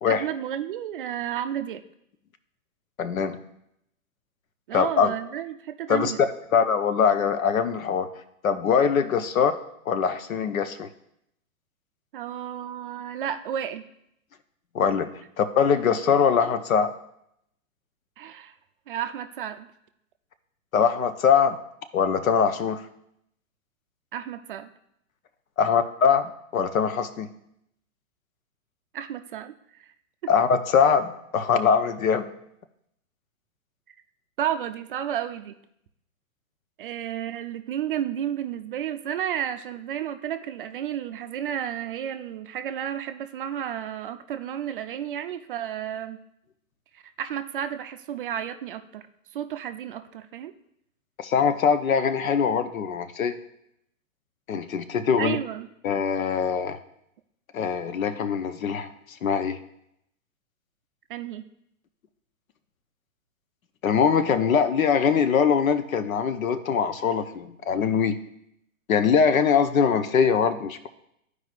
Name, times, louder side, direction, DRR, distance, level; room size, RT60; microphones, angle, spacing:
voice 1, 0.1-1.8 4.7-6.3 12.1-13.8 18.2-18.5 18.9-19.7 24.1-24.7 28.9-29.9 30.2-30.3 34.4-35.5 36.8-46.2 46.9-49.1 49.3-50.5 55.2-55.7 61.1-61.4, right 10 dB, 40° right, 8 dB, 0.4 m, -32 dB
voice 2, 3.0-3.4 4.7-5.1 5.9-6.1 6.5-8.1 8.4-9.6 9.9-10.9 14.7-16.9 20.7-21.6 21.9-22.8 25.6-27.3 30.3-32.2 51.2-53.4 54.5-55.4 55.8-56.8 57.5-59.6 63.8-68.1 68.9-70.9, left 6 dB, 75° left, 10 dB, 0.8 m, -22 dB
12.5 x 4.8 x 2.4 m, 0.77 s
hypercardioid pair, 125°, 42 cm